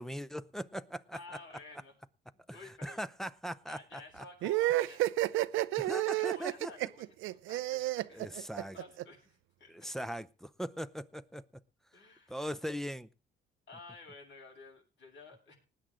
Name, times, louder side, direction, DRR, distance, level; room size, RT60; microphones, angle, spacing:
voice 1, 0.0-1.2 2.5-2.6 2.8-4.2 5.8-6.7 8.1-8.8 9.7-11.4 12.3-13.1, equal, ahead, 0.6 m, -40 dB
voice 2, 1.1-2.0 2.3-3.1 3.6-5.0 5.8-9.9 11.9-12.4 13.7-15.5, left 3 dB, 70° left, 7.7 m, -53 dB
sound 1, 4.4-9.0, right 16 dB, 90° right, 0.5 m, -31 dB
19.5 x 9.0 x 3.8 m
cardioid pair, 90°, 20 cm